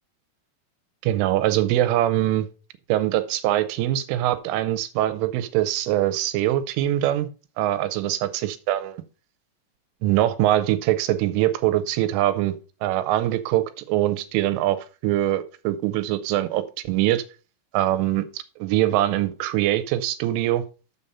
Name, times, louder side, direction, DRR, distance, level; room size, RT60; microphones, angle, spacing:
voice 1, 1.0-2.5 2.9-7.3 7.6-9.0 10.0-12.5 12.8-17.2 17.7-20.6, right 13 dB, 80° right, 3.1 m, -23 dB
7.1 x 6.9 x 5.5 m
omnidirectional pair, 6.0 m